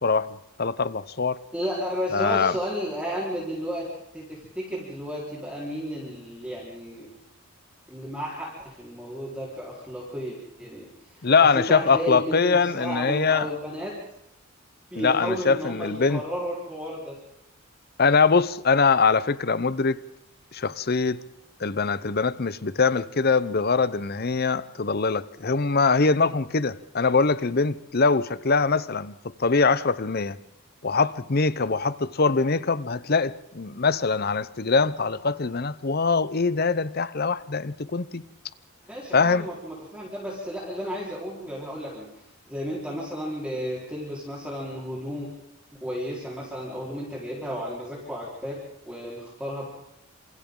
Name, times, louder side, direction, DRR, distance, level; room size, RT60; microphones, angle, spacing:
voice 1, 0.0-1.4 2.1-2.6 11.2-13.5 14.9-16.2 18.0-20.0 20.5-21.2 21.6-29.1 29.4-30.4 30.8-38.2 39.1-39.5, left 4 dB, 45° left, 0.8 m, -23 dB
voice 2, 1.5-3.9 4.1-7.1 7.9-14.0 14.9-17.2 38.9-42.1 42.5-45.3 45.8-48.6 48.8-49.7, equal, 5° right, 4.3 m, -33 dB
28.0 x 27.5 x 3.9 m
head